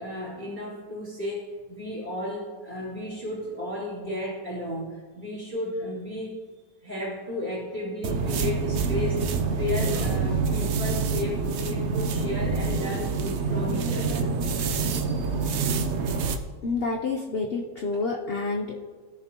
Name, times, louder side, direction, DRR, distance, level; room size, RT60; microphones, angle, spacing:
voice 1, 0.0-6.3 6.8-14.3 14.8-15.0, left 1 dB, 25° right, -11 dB, 3.1 m, -33 dB
sound 1, 8.0-16.4, right 4 dB, 90° right, 0.6 m, -26 dB
voice 2, 16.6-18.8, left 3 dB, 65° left, 0 dB, 0.6 m, -28 dB
17.0 x 7.0 x 3.0 m, 1.5 s
omnidirectional pair, 2.0 m